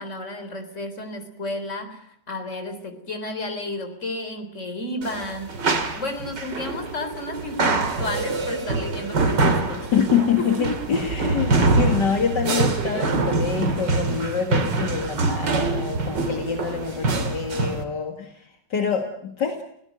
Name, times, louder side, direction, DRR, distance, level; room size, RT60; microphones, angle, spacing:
voice 1, 0.0-5.5 6.0-10.1 10.4-10.7, left 2 dB, 40° left, 7 dB, 4.1 m, -32 dB
sound 1, 5.0-17.8, right 3 dB, 70° right, 3.1 m, -24 dB
voice 2, 9.9-19.6, left 7 dB, 70° left, 4 dB, 2.6 m, -26 dB
26.5 x 17.0 x 9.2 m, 0.74 s
omnidirectional pair, 2.0 m